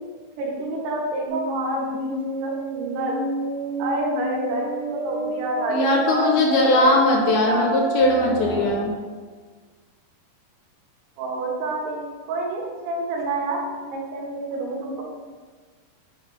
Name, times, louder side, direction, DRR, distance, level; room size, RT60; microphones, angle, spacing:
voice 1, 0.4-3.2 3.8-7.7 11.2-13.6 13.9-15.0, right 2 dB, 90° right, -2 dB, 3.3 m, -28 dB
sound 1, 1.3-8.7, right 2 dB, 50° right, 1.7 m, -29 dB
voice 2, 5.7-8.9, left 2 dB, 75° left, -1 dB, 1.8 m, -20 dB
7.9 x 3.8 x 4.5 m, 1.5 s
omnidirectional pair, 4.6 m